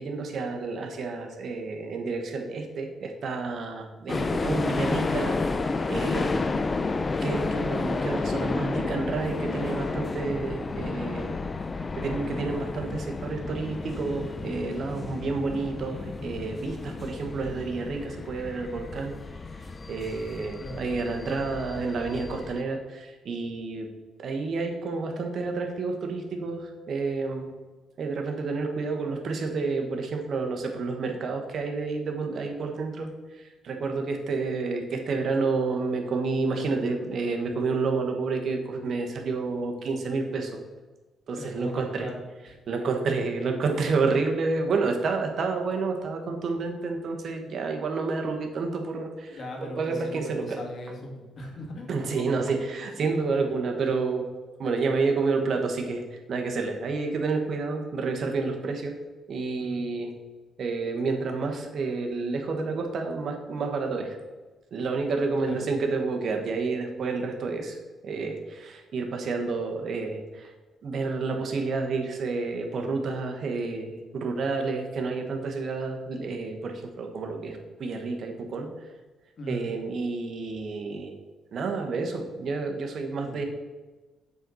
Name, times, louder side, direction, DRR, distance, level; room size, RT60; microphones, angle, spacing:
voice 1, 0.0-6.5 7.2-11.4 12.0-19.1 19.6-23.9 24.2-27.5 28.0-40.6 41.3-42.1 42.7-50.6 51.9-54.3 54.6-59.0 59.3-60.1 60.6-64.2 64.7-67.8 68.0-70.5 70.8-78.7 79.5-81.1 81.5-83.4, right 4 dB, 55° right, 3 dB, 1.3 m, -30 dB
sound 1, 4.1-22.6, left 3 dB, 30° left, 0.5 m, -31 dB
voice 2, 20.3-21.0 41.4-42.2 49.3-52.6 53.0-53.2 53.4-53.6 59.6-59.8 65.4-65.7 79.4-79.7 83.2-83.4, equal, 50° left, 0 dB, 2.1 m, -39 dB
7.7 x 4.1 x 6.2 m, 1.2 s
cardioid pair, 90°, 0 cm